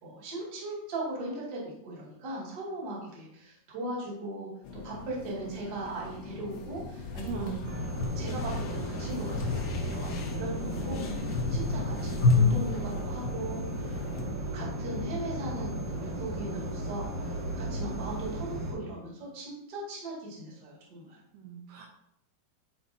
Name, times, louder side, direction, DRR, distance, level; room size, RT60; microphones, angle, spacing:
voice 1, 0.0-4.5 4.8-7.5 7.9-21.2, right 1 dB, 35° right, -5 dB, 1.9 m, -39 dB
sound 1, 4.7-14.2, left 3 dB, 75° left, 2.6 m, -32 dB
voice 2, 7.2-7.7 21.3-21.9, right 5 dB, 80° right, 1 dB, 2.6 m, -38 dB
sound 2, 7.6-18.7, right 1 dB, 60° right, 3.4 m, -35 dB
11.0 x 4.6 x 2.7 m, 0.81 s
omnidirectional pair, 4.7 m